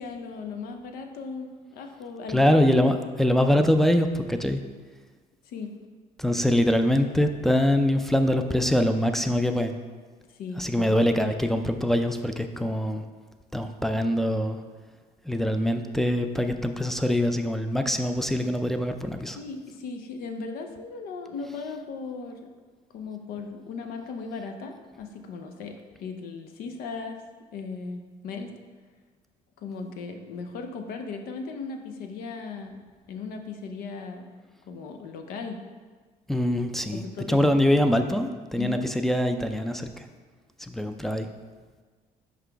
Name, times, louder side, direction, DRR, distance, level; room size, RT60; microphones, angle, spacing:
voice 1, 0.0-2.8 5.5-5.8 10.4-11.2 19.4-22.5 22.9-27.2 27.5-28.5 29.6-32.8 33.1-34.3 34.7-35.6 36.9-37.4 38.6-38.9, left 4 dB, 80° left, 5 dB, 0.6 m, -37 dB
voice 2, 2.3-4.6 6.2-9.8 10.6-13.0 13.5-14.6 15.3-19.4 36.3-40.1 40.6-41.3, left 1 dB, ahead, 7 dB, 0.4 m, -24 dB
5.7 x 4.8 x 3.4 m, 1.4 s
cardioid pair, 95°, 15 cm